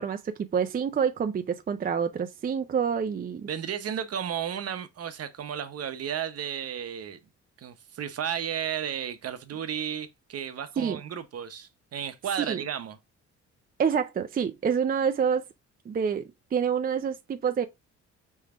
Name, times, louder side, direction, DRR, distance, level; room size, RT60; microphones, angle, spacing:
voice 1, 0.0-3.5 10.8-11.0 12.4-12.6 13.8-15.4 15.9-16.2 16.5-17.6, right 7 dB, 30° right, 0.5 m, -27 dB
voice 2, 3.5-7.2 7.6-13.0, right 8 dB, 55° right, 0.8 m, -33 dB
5.4 x 3.4 x 2.3 m
cardioid pair, 90°, 30 cm